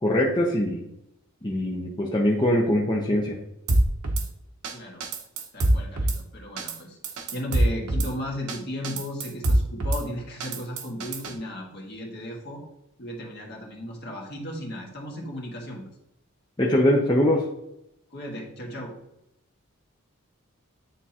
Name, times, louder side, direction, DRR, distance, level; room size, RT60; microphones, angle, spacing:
voice 1, 0.0-0.8 1.4-3.4 16.6-17.5, left 1 dB, 20° left, -2 dB, 0.6 m, -22 dB
Drum kit / Snare drum, 3.7-4.3 4.6-4.7 5.0-6.2 6.6-6.8 7.0-8.1 8.5-8.6 8.8-10.0 10.4-11.3, right 1 dB, 90° right, 0.9 m, -24 dB
voice 2, 4.7-5.0 5.5-7.0 7.3-12.6 13.0-15.9 18.1-18.9, left 1 dB, 50° left, -1 dB, 1.5 m, -35 dB
9.3 x 3.7 x 2.9 m, 0.85 s
head